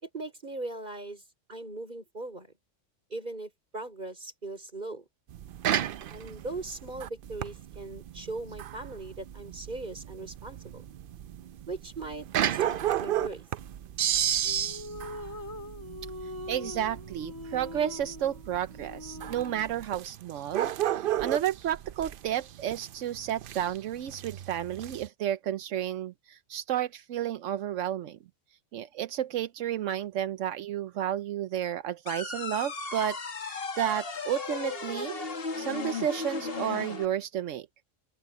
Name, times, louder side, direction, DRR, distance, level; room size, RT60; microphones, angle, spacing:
voice 1, 0.0-1.2 1.5-2.5 3.1-5.1 6.1-10.8 11.7-13.4, right 2 dB, 40° right, 5.4 m, -39 dB
sound 1, 5.3-25.1, right 11 dB, 60° right, 0.6 m, -33 dB
sound 2, 14.4-19.8, left 2 dB, 15° left, 4.0 m, -42 dB
voice 2, 16.2-28.2 28.7-35.2 35.6-37.7, right 10 dB, 80° right, 1.0 m, -32 dB
sound 3, 32.1-37.1, left 4 dB, 50° left, 1.8 m, -35 dB
open air
omnidirectional pair, 1.3 m